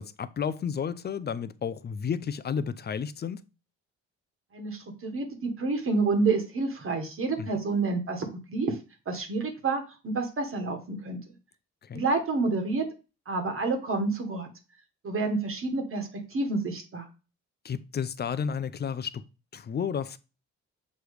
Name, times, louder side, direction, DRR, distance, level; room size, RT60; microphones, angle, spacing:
voice 1, 0.0-3.4 7.4-7.6 11.8-12.0 17.6-19.2 19.5-20.2, left 7 dB, 35° left, 0.5 m, -32 dB
voice 2, 4.5-8.8 9.0-11.2 11.9-12.9 13.3-14.5 15.0-17.1, right 3 dB, 45° right, 1.6 m, -29 dB
6.6 x 3.1 x 4.9 m
cardioid pair, 90°, 30 cm